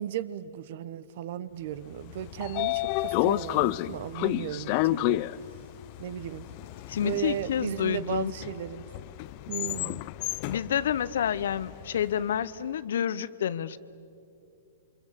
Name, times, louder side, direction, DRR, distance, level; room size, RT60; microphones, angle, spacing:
voice 1, 0.0-5.3 6.0-6.5 7.0-8.9 9.5-10.0, right 11 dB, 55° right, 17 dB, 1.0 m, -35 dB
Train / Sliding door, 2.0-12.1, left 19 dB, 40° left, 0.5 m, -31 dB
voice 2, 6.9-8.3 10.5-13.8, left 9 dB, 70° left, 17 dB, 0.9 m, -29 dB
27.5 x 25.0 x 7.4 m, 2.6 s
hypercardioid pair, 135°, 0 cm